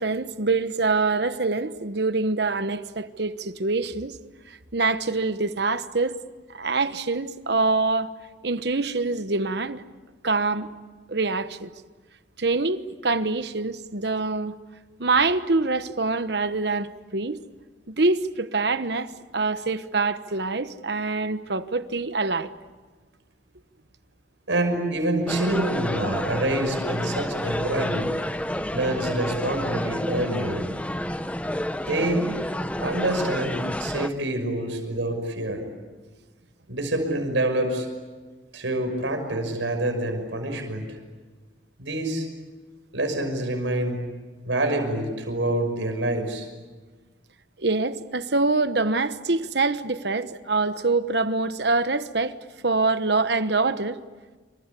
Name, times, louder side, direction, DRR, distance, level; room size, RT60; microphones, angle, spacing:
voice 1, 0.0-4.1 4.5-6.2 6.5-8.1 8.4-9.8 10.2-10.7 11.1-11.7 12.4-14.6 15.0-17.4 17.9-22.5 47.6-52.4 52.6-54.0, right 3 dB, 60° right, 1.1 m, -25 dB
voice 2, 24.5-28.1 28.7-30.6 31.9-32.3 32.8-35.6 36.7-37.9 38.5-40.9 41.8-42.3 42.9-44.0 44.4-46.5, right 1 dB, 85° right, 6.0 m, -26 dB
sound 1, 25.3-34.1, left 1 dB, 5° left, 0.8 m, -29 dB
27.0 x 26.0 x 8.3 m
head